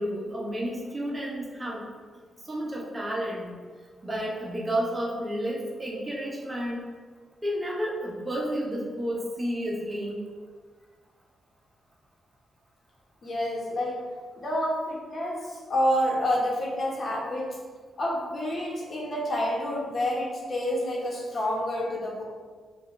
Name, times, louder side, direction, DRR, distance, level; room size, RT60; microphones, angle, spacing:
voice 1, 0.0-1.8 2.4-3.5 4.0-6.9 7.4-10.2, equal, 25° right, -3 dB, 1.0 m, -31 dB
voice 2, 13.2-14.0 14.4-17.6 18.0-22.2, equal, 50° left, -3 dB, 1.2 m, -28 dB
5.4 x 2.6 x 3.2 m, 1.5 s
cardioid pair, 70°, 0 cm